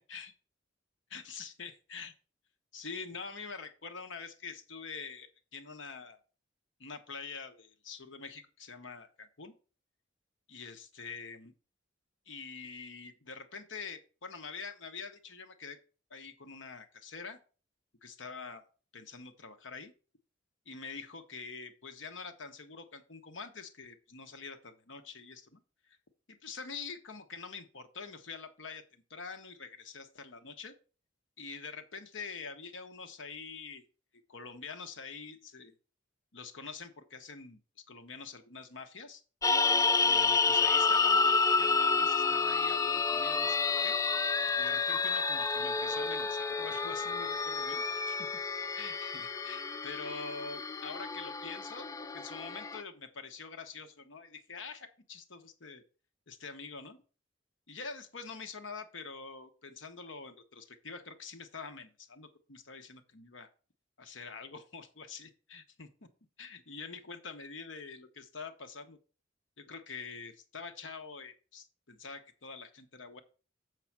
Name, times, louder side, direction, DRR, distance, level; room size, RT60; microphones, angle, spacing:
voice 1, 1.1-2.1 2.7-6.2 6.8-9.5 10.5-11.5 12.3-15.8 16.1-17.4 18.0-18.6 18.9-19.9 20.7-25.6 25.9-26.0 26.3-30.7 31.4-33.8 34.3-35.7 36.3-37.6 37.9-39.2 40.0-44.0 44.6-48.3 48.7-51.9 52.1-55.8 56.3-57.0 57.7-63.5 64.0-66.1 66.4-69.0 69.6-73.2, left 5 dB, 80° left, 7 dB, 1.2 m, -45 dB
sound 1, 39.4-52.8, left 4 dB, 15° left, 0.3 m, -29 dB
7.6 x 4.9 x 5.9 m, 0.37 s
head